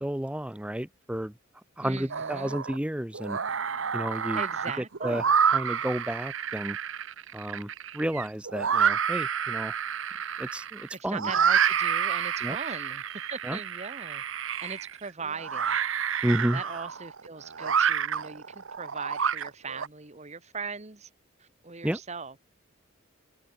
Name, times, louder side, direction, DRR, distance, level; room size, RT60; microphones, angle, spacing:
voice 1, 0.0-1.3 1.8-3.4 3.9-4.4 5.0-5.2 5.5-6.8 7.3-9.7 10.4-11.3 12.4-12.6 13.4-13.6 16.2-16.6 21.8-22.0, right 1 dB, 5° right, 0.5 m, -31 dB
voice 2, 1.8-2.6 4.3-5.3 10.9-14.2 14.6-15.7 16.5-21.1 21.4-22.3, right 4 dB, 30° right, 1.4 m, -39 dB
sound 1, 2.1-2.8 3.1-19.9, right 7 dB, 65° right, 0.9 m, -29 dB
head